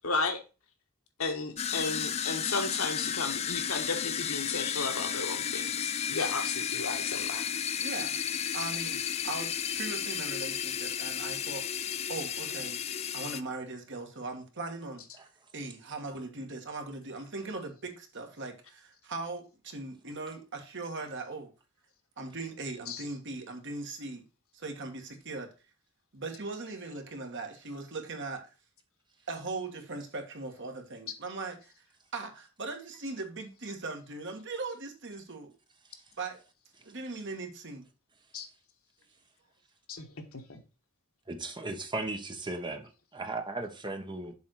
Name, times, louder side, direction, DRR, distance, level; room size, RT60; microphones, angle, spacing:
voice 1, 0.0-0.4 1.2-7.5 22.9-23.0 38.3-38.5 39.9-40.1 40.3-40.6, left 4 dB, 75° left, 1.4 m, -34 dB
sound 1, 1.6-13.4, left 8 dB, 30° left, 0.4 m, -33 dB
voice 2, 7.8-8.1 8.5-12.8 13.1-15.3 15.5-21.5 22.2-24.2 24.5-25.5 26.1-28.5 29.3-31.7 32.1-35.5 36.2-36.4 36.8-37.9, right 3 dB, 60° right, 1.7 m, -39 dB
voice 3, 41.3-44.3, right 2 dB, 20° right, 1.1 m, -36 dB
7.3 x 3.6 x 6.3 m
head